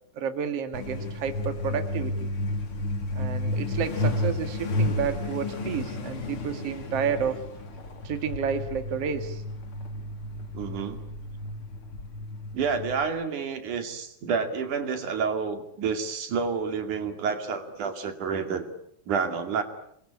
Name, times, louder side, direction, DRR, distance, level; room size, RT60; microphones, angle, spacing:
voice 1, 0.2-2.3 3.1-7.4 8.0-9.4, right 7 dB, 55° right, 7 dB, 2.8 m, -30 dB
Truck, 0.7-13.0, left 1 dB, 45° left, 3.6 m, -32 dB
voice 2, 10.5-11.0 12.5-18.7 19.1-19.6, right 5 dB, 80° right, 7 dB, 3.9 m, -29 dB
28.0 x 22.0 x 8.6 m, 0.72 s
omnidirectional pair, 3.5 m